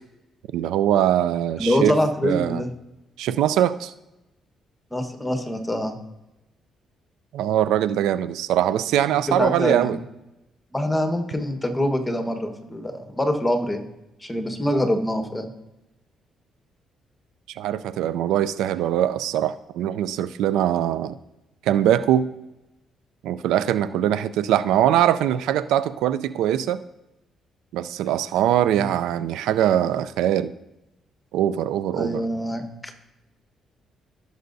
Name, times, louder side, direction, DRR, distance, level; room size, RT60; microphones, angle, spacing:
voice 1, 0.5-2.0 2.2-2.6 3.2-3.9 7.3-10.0 17.5-21.2 21.6-22.3 23.2-26.8 27.7-30.5 31.3-32.2, right 11 dB, 90° right, 14 dB, 0.4 m, -22 dB
voice 2, 1.6-2.7 4.9-6.0 9.3-9.9 10.7-13.8 14.2-15.5 28.8-28.9 32.0-32.9, left 1 dB, 10° left, 6 dB, 1.3 m, -25 dB
16.0 x 6.6 x 2.7 m, 0.95 s
cardioid pair, 90°, 0 cm